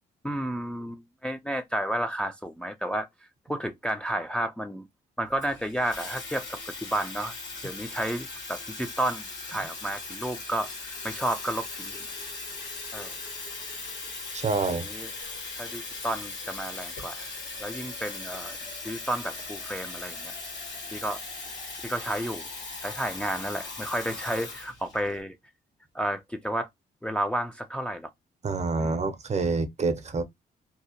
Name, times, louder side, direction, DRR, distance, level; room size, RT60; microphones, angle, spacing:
voice 1, 0.2-3.1 3.5-4.9 5.2-7.3 7.6-12.0 12.9-13.1 14.7-15.1 15.6-17.3 17.6-18.6 18.8-20.3 20.9-21.2 21.8-22.5 22.8-25.3 25.9-26.7 27.0-28.1 28.8-29.0, right 1 dB, 5° left, 0.4 m, -31 dB
Water tap faucet / Fill (with liquid), 5.4-25.2, left 3 dB, 80° left, 1.2 m, -39 dB
voice 2, 14.3-14.9 28.4-30.2, right 4 dB, 40° right, 0.6 m, -27 dB
2.7 x 2.0 x 2.8 m
cardioid pair, 70°, 18 cm